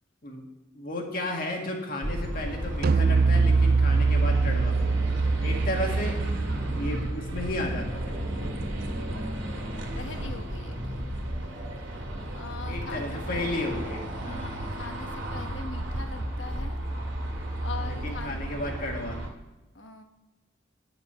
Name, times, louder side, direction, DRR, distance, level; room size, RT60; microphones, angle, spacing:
voice 1, 0.7-4.8 5.4-6.2 6.8-8.1 12.7-14.5 17.9-19.2, left 1 dB, 45° left, 1 dB, 2.0 m, -33 dB
sound 1, 2.0-19.3, right 1 dB, 80° right, 2.2 m, -33 dB
sound 2, 2.8-8.2, right 4 dB, 50° right, 0.3 m, -24 dB
voice 2, 9.9-11.0 12.2-13.8 14.2-16.8 17.5-18.5 19.7-20.0, left 4 dB, 75° left, 6 dB, 1.2 m, -42 dB
10.5 x 6.7 x 6.9 m, 1.0 s
head